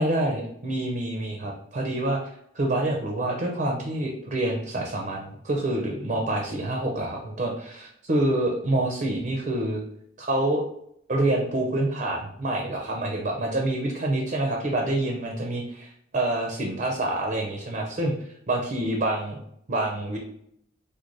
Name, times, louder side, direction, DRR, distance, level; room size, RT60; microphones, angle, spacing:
voice 1, 0.0-2.2 2.5-9.8 10.2-10.6 11.1-18.1 18.5-19.4 19.7-20.2, right 1 dB, 40° right, 1 dB, 0.5 m, -27 dB
4.5 x 2.2 x 2.5 m, 0.71 s
head